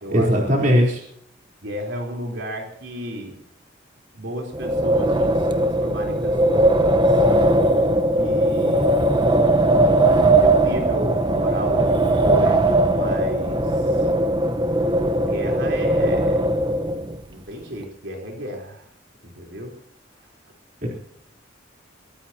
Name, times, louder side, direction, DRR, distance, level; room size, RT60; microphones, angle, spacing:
voice 1, 0.1-1.0 20.8-20.9, equal, 45° right, -2 dB, 3.9 m, -18 dB
voice 2, 1.6-3.4 4.1-7.1 8.1-9.4 9.9-13.6 15.1-16.5 17.3-18.8 19.3-19.7, equal, 65° right, 1 dB, 4.1 m, -33 dB
Wind, 4.5-17.2, right 1 dB, 25° right, 1.1 m, -19 dB
23.0 x 18.0 x 3.0 m, 0.65 s
head